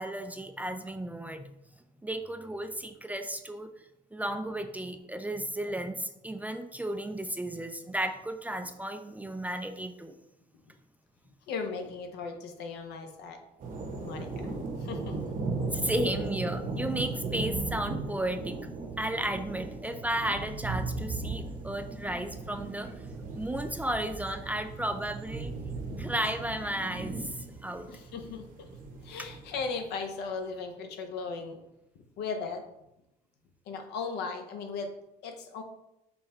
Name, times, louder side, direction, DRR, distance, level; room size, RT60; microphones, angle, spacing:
voice 1, 0.0-1.5 2.0-3.7 4.1-10.1 15.7-18.6 19.0-23.0 23.4-25.5 26.0-27.9, right 1 dB, 10° right, 7 dB, 0.3 m, -34 dB
voice 2, 11.5-13.4 14.0-14.5 14.8-15.2 27.9-28.7 29.0-31.6 31.9-32.6 33.7-34.9 35.2-35.6, left 4 dB, 80° left, 4 dB, 0.8 m, -37 dB
sound 1, 13.6-29.7, right 3 dB, 50° right, 0.9 m, -37 dB
5.5 x 2.2 x 4.2 m, 0.88 s
cardioid pair, 110°, 17 cm